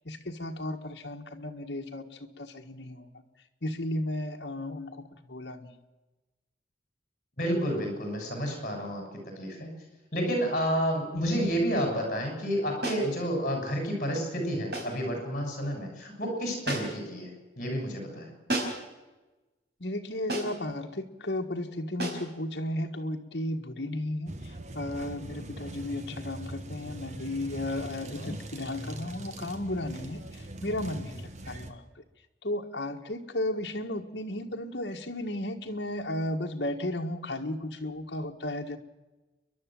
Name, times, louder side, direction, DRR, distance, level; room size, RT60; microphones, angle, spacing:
voice 1, 0.0-3.2 3.6-5.8 19.8-31.9 32.4-38.8, left 1 dB, 70° left, 2 dB, 1.6 m, -34 dB
voice 2, 7.4-9.0 9.4-9.7 10.1-17.3 17.6-18.3 28.2-28.3, equal, 45° left, 3 dB, 6.9 m, -30 dB
sound 1, 12.8-13.1 14.7-15.0 16.7-17.1 18.5-18.9 20.3-20.7 22.0-22.3, right 1 dB, 60° right, 4.9 m, -32 dB
sound 2, 24.3-31.7, right 1 dB, 40° right, 1.4 m, -42 dB
29.5 x 11.5 x 7.7 m, 1.1 s
head